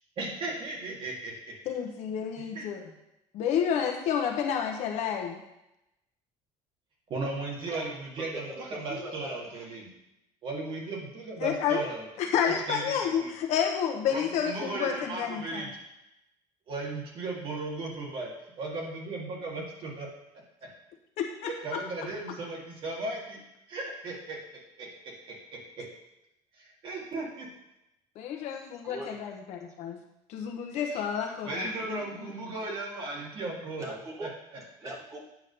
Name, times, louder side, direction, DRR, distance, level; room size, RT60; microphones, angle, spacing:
voice 1, 0.2-1.3 2.6-2.7 7.1-9.9 10.4-12.1 12.4-13.3 14.1-15.7 16.7-18.3 18.6-20.1 20.6-20.7 21.5-23.4 23.7-24.4 24.8-25.4 25.8-25.9 26.5-27.5 30.9-31.0 31.4-34.3 34.8-34.9, right 2 dB, 35° right, -2 dB, 2.0 m, -36 dB
voice 2, 1.7-2.8 3.3-5.4 11.4-11.8 12.2-15.7 21.2-21.8 28.1-30.0 30.3-32.3, left 8 dB, 50° left, 3 dB, 1.1 m, -30 dB
voice 3, 8.2-9.6 28.5-29.4 31.2-31.3 33.8-35.3, right 1 dB, 20° right, -2 dB, 1.5 m, -42 dB
9.3 x 3.8 x 6.7 m, 0.87 s
cardioid pair, 175°, 14 cm